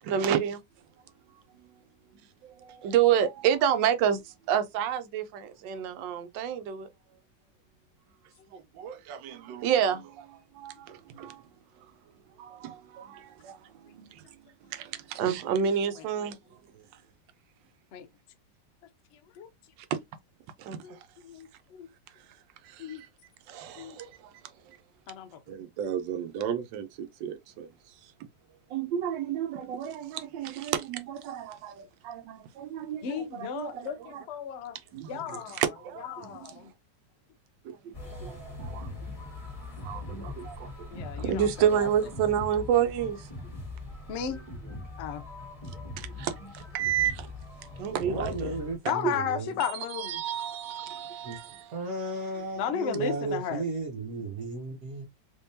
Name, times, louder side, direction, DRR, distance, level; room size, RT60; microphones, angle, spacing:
voice 1, 0.0-0.6 1.3-1.8 2.1-6.9 8.5-11.9 12.3-17.0 19.8-20.0 20.6-21.1 22.1-23.1 23.5-24.8 25.5-28.1 28.7-34.2 34.9-36.7 37.6-39.2 39.8-43.3 44.3-44.8 45.6-47.3 47.6-48.6 49.6-51.8 52.4-52.5, right 9 dB, 80° right, 1.3 m, -31 dB
voice 2, 21.3-21.9 22.8-23.0 23.8-24.0 25.1-25.4 33.0-34.8 35.1-35.6 36.1-36.7 40.9-41.5 44.1-44.4 45.0-45.2 48.8-50.2 52.6-53.6, left 8 dB, 75° left, 0.6 m, -34 dB
sound 1, 37.9-48.8, left 2 dB, 20° left, 1.2 m, -41 dB
voice 3, 48.1-49.5 51.2-51.4 51.7-55.1, right 2 dB, 60° right, 1.1 m, -34 dB
3.6 x 3.0 x 2.6 m
omnidirectional pair, 2.0 m